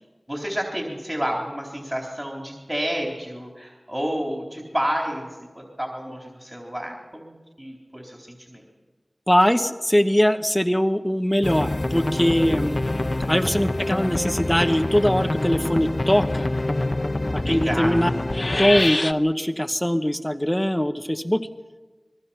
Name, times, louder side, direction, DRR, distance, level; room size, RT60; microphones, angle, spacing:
voice 1, 0.3-8.6 12.6-13.3 17.5-18.1, equal, 15° right, 0 dB, 3.9 m, -30 dB
voice 2, 9.3-12.8 13.3-16.5 17.3-18.1 18.5-21.5, equal, 10° left, 8 dB, 1.0 m, -21 dB
sound 1, 11.4-19.1, left 2 dB, 40° left, 0.8 m, -25 dB
26.0 x 22.5 x 5.9 m, 1.3 s
wide cardioid pair, 60°, 0 cm